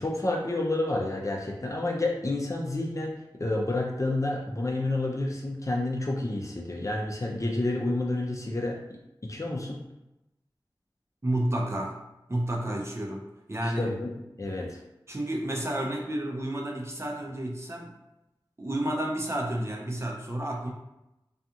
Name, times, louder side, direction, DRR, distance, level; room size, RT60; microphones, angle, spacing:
voice 1, 0.0-8.8 9.2-9.8 13.6-14.1 14.4-14.8, left 2 dB, 40° left, -1 dB, 0.5 m, -29 dB
voice 2, 11.2-12.0 12.3-13.9 15.1-17.9 18.6-20.7, right 1 dB, 30° right, -1 dB, 0.5 m, -31 dB
2.4 x 2.3 x 2.8 m, 0.91 s
wide cardioid pair, 45°, 9 cm